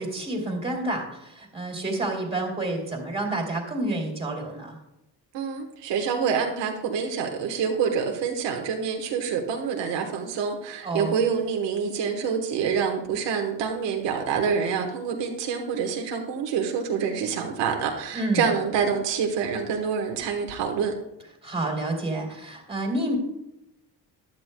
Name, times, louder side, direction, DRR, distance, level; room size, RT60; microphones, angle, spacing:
voice 1, 0.0-4.8 10.8-11.1 18.1-18.5 21.4-23.2, right 2 dB, 15° right, -1 dB, 3.0 m, -29 dB
voice 2, 5.3-20.9, right 6 dB, 85° right, 2 dB, 1.4 m, -27 dB
14.5 x 11.0 x 2.2 m, 0.89 s
cardioid pair, 120°, 42 cm